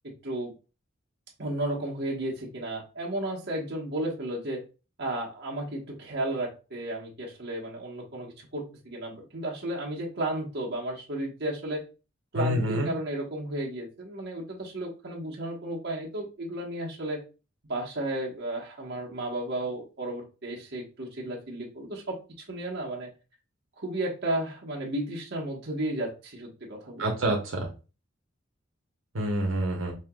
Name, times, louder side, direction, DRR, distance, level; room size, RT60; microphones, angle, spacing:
voice 1, 0.0-0.5 1.4-4.6 5.0-11.8 12.3-17.2 17.7-23.1 23.8-27.3, right 1 dB, 55° right, -2 dB, 1.2 m, -33 dB
voice 2, 12.3-12.9 27.0-27.7 29.1-29.9, right 1 dB, 85° right, 0 dB, 0.9 m, -27 dB
5.5 x 2.8 x 2.3 m, 0.32 s
head